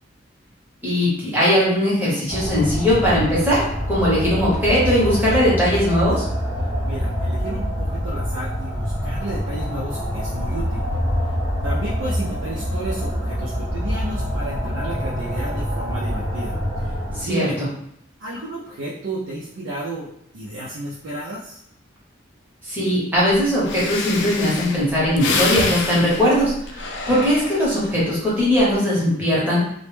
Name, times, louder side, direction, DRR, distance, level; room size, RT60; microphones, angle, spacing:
voice 1, 0.8-6.2 17.1-17.7 22.6-29.6, equal, 10° right, -8 dB, 0.8 m, -19 dB
sound 1, 2.3-17.2, equal, 40° right, 1.0 m, -25 dB
voice 2, 6.8-10.8 11.6-17.6 18.2-21.6, right 1 dB, 75° right, -5 dB, 0.4 m, -32 dB
Breathing, 23.3-23.4 23.7-27.9 28.4-28.7, left 3 dB, 60° left, 0.3 m, -27 dB
2.1 x 2.1 x 3.1 m, 0.73 s
head